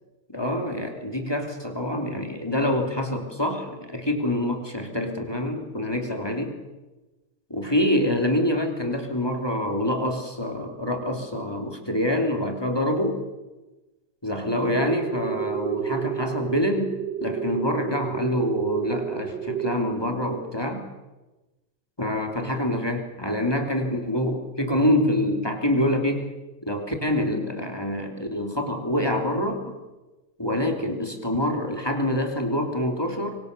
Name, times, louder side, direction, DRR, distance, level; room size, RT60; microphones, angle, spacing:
voice 1, 0.3-6.5 7.5-13.2 14.2-16.9 17.2-20.8 22.0-26.3 26.7-29.8 30.4-33.4, left 1 dB, 15° left, 3 dB, 3.0 m, -26 dB
sound 1, 14.8-19.8, right 9 dB, 70° right, 1.9 m, -31 dB
25.5 x 25.5 x 6.8 m, 1.1 s
omnidirectional pair, 2.0 m